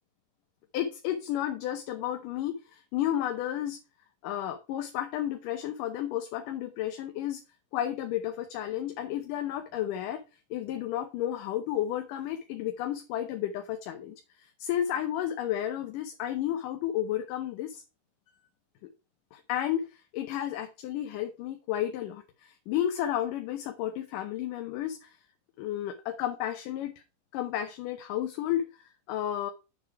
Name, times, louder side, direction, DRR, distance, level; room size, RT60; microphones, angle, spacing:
voice 1, 0.7-3.8 4.2-7.4 7.7-10.2 10.5-14.2 14.6-17.8 18.8-18.9 19.3-25.2 25.6-26.9 27.3-29.5, left 11 dB, 75° left, 2.4 m, -32 dB
8.2 x 7.3 x 4.6 m
omnidirectional pair, 4.0 m